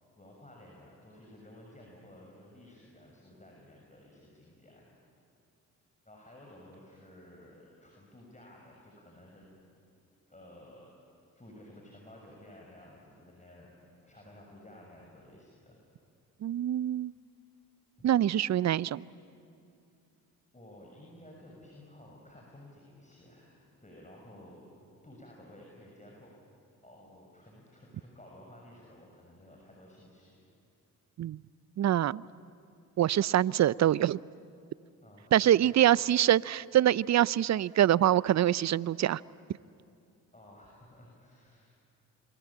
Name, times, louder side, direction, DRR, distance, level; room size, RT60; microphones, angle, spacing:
voice 1, 0.2-4.9 6.0-9.5 10.3-10.9 11.3-13.7 14.0-15.8 20.5-24.7 25.0-26.3 26.8-30.4 35.0-36.1 40.3-41.7, left 1 dB, 20° left, -1 dB, 6.6 m, -54 dB
voice 2, 16.4-17.1 18.0-19.0 31.2-31.4 31.8-32.2 33.0-34.2 35.3-39.2, right 12 dB, 45° right, 22 dB, 0.6 m, -25 dB
28.0 x 22.5 x 8.7 m, 2.5 s
hypercardioid pair, 50°, 39 cm